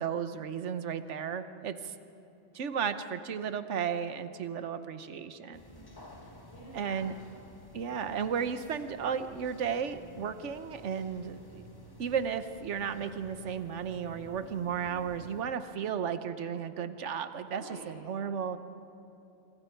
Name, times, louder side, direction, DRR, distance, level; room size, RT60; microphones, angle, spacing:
voice 1, 0.0-1.9 2.5-5.6 6.7-7.2 7.7-11.6 12.0-18.6, right 7 dB, 65° right, 10 dB, 1.2 m, -34 dB
voice 2, 5.5-6.0 6.2-7.0 17.5-17.9, right 1 dB, 85° left, -7 dB, 6.2 m, -51 dB
sound 1, 5.5-15.4, equal, 20° left, 1.5 m, -52 dB
26.5 x 25.5 x 4.5 m, 2.8 s
omnidirectional pair, 1.3 m